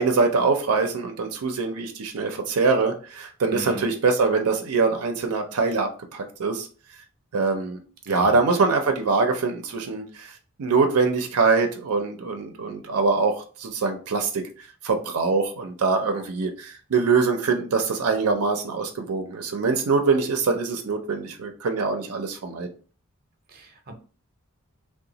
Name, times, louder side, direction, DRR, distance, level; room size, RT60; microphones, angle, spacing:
voice 1, 0.0-6.7 7.3-7.8 8.1-10.3 10.6-14.4 14.8-22.7, right 4 dB, 85° right, 5 dB, 0.5 m, -23 dB
voice 2, 3.5-3.9 8.1-8.4 23.5-23.9, right 2 dB, 45° right, 4 dB, 0.6 m, -37 dB
2.9 x 2.1 x 3.9 m, 0.39 s
head